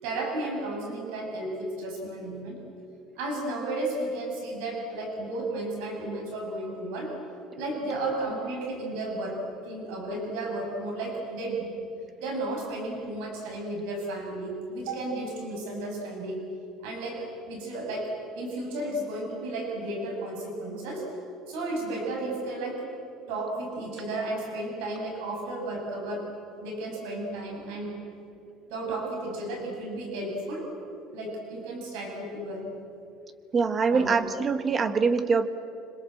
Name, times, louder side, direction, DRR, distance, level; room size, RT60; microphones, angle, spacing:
voice 1, 0.0-2.6 3.2-7.1 7.5-9.4 9.7-11.7 12.2-16.4 16.8-18.1 18.3-21.0 21.5-22.8 23.3-26.2 26.6-27.9 28.7-30.6 31.1-32.7 33.9-34.1, right 2 dB, 90° right, 0 dB, 7.4 m, -33 dB
voice 2, 33.5-35.5, right 5 dB, 20° right, 10 dB, 1.2 m, -24 dB
26.5 x 26.5 x 7.9 m, 2.7 s
cardioid pair, 170°, 0 cm